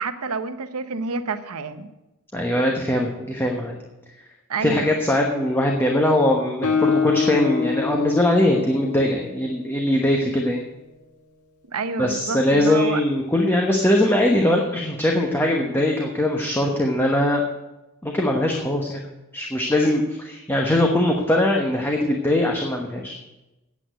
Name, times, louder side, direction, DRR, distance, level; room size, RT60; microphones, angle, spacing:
voice 1, 0.0-1.9 4.5-4.9 11.7-13.0, right 4 dB, 80° right, 10 dB, 0.9 m, -28 dB
voice 2, 2.3-3.8 4.6-10.6 12.0-17.4 18.0-19.0 19.3-23.2, left 1 dB, 10° left, 0 dB, 1.1 m, -21 dB
Guitar, 6.6-10.3, left 5 dB, 85° left, 1.6 m, -26 dB
8.8 x 8.3 x 8.9 m, 1.0 s
head